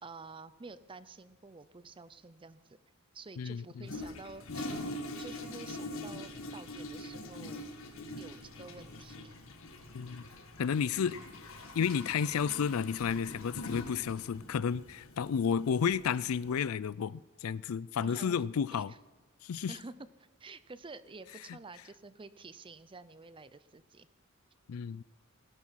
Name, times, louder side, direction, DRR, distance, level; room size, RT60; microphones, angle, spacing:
voice 1, 0.0-2.8 3.1-4.7 5.2-7.7 8.2-9.3 18.0-18.4 18.7-19.0 19.7-24.1, right 3 dB, 25° right, 15 dB, 0.6 m, -50 dB
voice 2, 3.4-3.8 9.9-10.2 10.6-11.2 11.7-18.9 19.4-19.8 24.7-25.0, left 7 dB, 90° left, 21 dB, 0.4 m, -32 dB
Toilet flush, 3.8-16.6, left 1 dB, 75° left, 1.7 m, -44 dB
18.5 x 11.0 x 5.8 m, 1.2 s
head